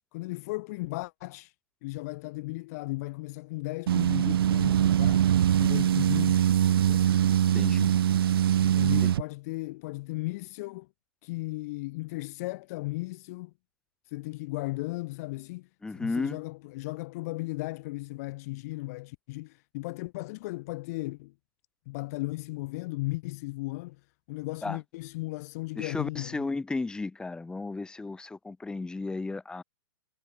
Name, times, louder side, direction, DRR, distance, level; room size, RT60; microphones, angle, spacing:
voice 1, 0.1-1.5 1.8-5.3 5.6-7.1 8.6-10.9 11.2-13.5 14.1-21.3 21.9-24.0 24.3-26.5, left 22 dB, 40° left, 0.7 m, -36 dB
sound 1, 3.9-9.2, right 10 dB, 70° right, 0.4 m, -23 dB
voice 2, 7.5-7.9 9.0-9.1 15.8-16.4 24.6-24.8 25.8-29.6, left 3 dB, 5° left, 1.9 m, -34 dB
hypercardioid pair, 135°, 13 cm